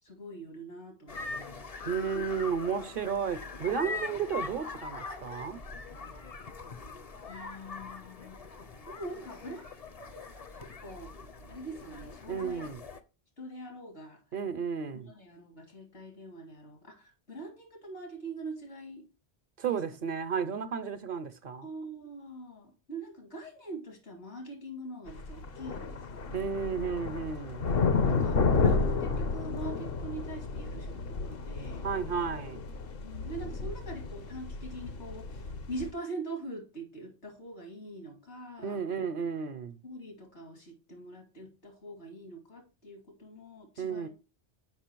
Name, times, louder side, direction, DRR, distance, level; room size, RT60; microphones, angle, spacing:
voice 1, 0.0-1.7 7.2-8.4 8.9-9.7 10.0-11.1 11.5-12.6 13.4-14.2 14.9-19.0 19.7-19.8 21.6-26.5 28.0-31.9 33.0-38.8 39.8-44.1, right 2 dB, 80° left, 2.9 m, -43 dB
sound 1, 1.1-13.0, left 4 dB, 40° left, 0.7 m, -42 dB
voice 2, 1.9-5.6 12.3-12.8 14.3-15.1 19.6-21.7 26.3-27.7 31.8-32.6 38.6-39.8 43.8-44.1, right 6 dB, 55° right, 0.8 m, -33 dB
sound 2, 25.1-35.9, left 4 dB, 60° left, 1.0 m, -31 dB
6.1 x 5.5 x 4.5 m
omnidirectional pair, 1.1 m